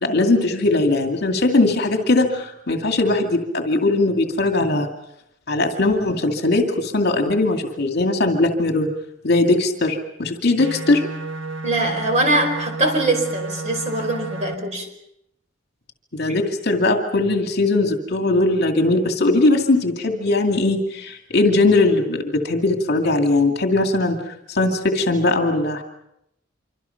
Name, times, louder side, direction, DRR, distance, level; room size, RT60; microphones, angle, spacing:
voice 1, 0.0-4.9 5.5-8.9 9.2-11.0 16.1-25.8, left 2 dB, 60° left, 4 dB, 2.4 m, -19 dB
sound 1, 10.6-14.5, right 3 dB, 80° right, 1.5 m, -31 dB
voice 2, 11.6-14.9, right 2 dB, 35° right, 5 dB, 5.0 m, -22 dB
26.5 x 25.5 x 5.8 m, 0.78 s
head